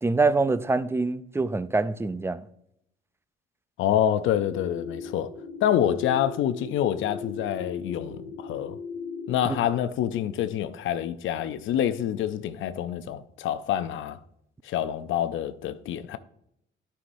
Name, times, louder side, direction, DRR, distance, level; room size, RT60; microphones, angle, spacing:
voice 1, 0.0-2.5, right 3 dB, 10° right, 0.4 m, -25 dB
voice 2, 3.8-5.3 5.6-8.8 9.3-14.2 14.6-16.2, left 10 dB, 80° left, 0.6 m, -27 dB
sound 1, 4.4-9.7, left 4 dB, 60° left, 1.7 m, -38 dB
11.0 x 5.7 x 2.6 m
cardioid pair, 90°, 20 cm